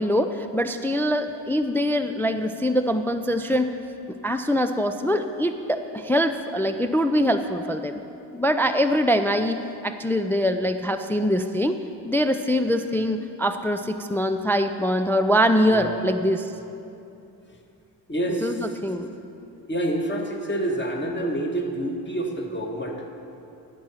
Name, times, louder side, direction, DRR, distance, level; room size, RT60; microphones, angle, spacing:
voice 1, 0.0-3.8 4.2-8.0 8.3-9.6 9.8-11.8 12.0-16.5 18.4-19.2, equal, 5° left, 6 dB, 0.4 m, -23 dB
voice 2, 15.6-16.0 18.1-18.6 19.7-23.1, right 1 dB, 20° left, 1 dB, 1.8 m, -28 dB
10.5 x 7.5 x 5.6 m, 2.7 s
hypercardioid pair, 45°, 49 cm